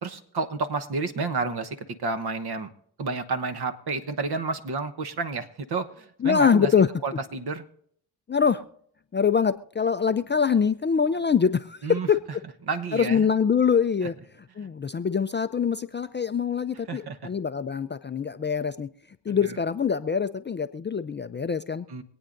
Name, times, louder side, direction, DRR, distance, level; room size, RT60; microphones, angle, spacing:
voice 1, 0.0-2.7 3.0-6.7 7.0-7.6 11.8-12.1 12.7-13.3 16.9-17.3 19.3-19.4 21.9-22.0, right 4 dB, 50° right, 9 dB, 1.2 m, -30 dB
voice 2, 6.2-6.9 8.3-8.6 9.1-12.2 12.9-14.1 14.6-18.9 19.2-21.9, left 6 dB, 25° left, 10 dB, 0.4 m, -24 dB
25.5 x 8.7 x 2.6 m, 0.67 s
supercardioid pair, 55°, 49 cm